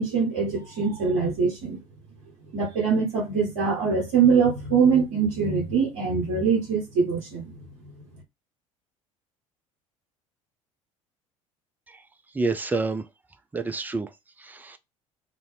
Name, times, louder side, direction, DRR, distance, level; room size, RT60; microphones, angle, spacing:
voice 1, 0.0-1.8 2.5-7.5, right 5 dB, 65° right, 1.2 m, -23 dB
voice 2, 12.3-13.0 13.5-14.1 14.4-14.8, right 3 dB, 10° right, 0.4 m, -28 dB
2.6 x 2.5 x 3.0 m
figure-of-eight pair, 65°, 18 cm